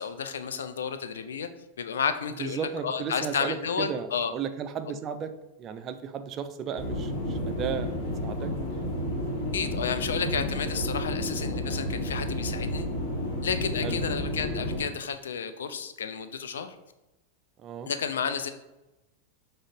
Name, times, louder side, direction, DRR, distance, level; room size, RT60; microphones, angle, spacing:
voice 1, 0.0-1.5 1.8-4.3 9.5-12.9 13.4-16.7 17.9-18.5, left 6 dB, 65° left, 9 dB, 0.3 m, -31 dB
voice 2, 2.4-5.3 5.6-7.9 8.2-8.5 10.7-10.9 13.8-14.0 17.6-17.9, right 7 dB, 30° right, 9 dB, 0.3 m, -34 dB
sound 1, 6.8-14.8, left 1 dB, 40° left, 1.2 m, -31 dB
5.0 x 2.0 x 3.8 m, 0.99 s
figure-of-eight pair, 90°, 0 cm